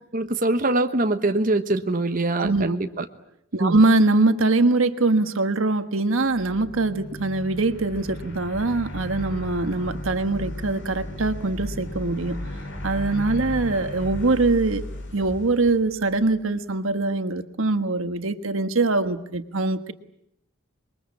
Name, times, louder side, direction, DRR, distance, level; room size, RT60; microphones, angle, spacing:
voice 1, 0.1-3.0 3.6-3.8, right 2 dB, 40° right, 6 dB, 1.2 m, -23 dB
voice 2, 2.4-2.7 3.5-12.4 12.8-14.9 15.1-19.9, right 2 dB, 85° right, 9 dB, 1.4 m, -23 dB
sound 1, 6.2-16.4, left 1 dB, 70° left, 6.1 m, -35 dB
27.0 x 22.0 x 8.6 m, 0.76 s
head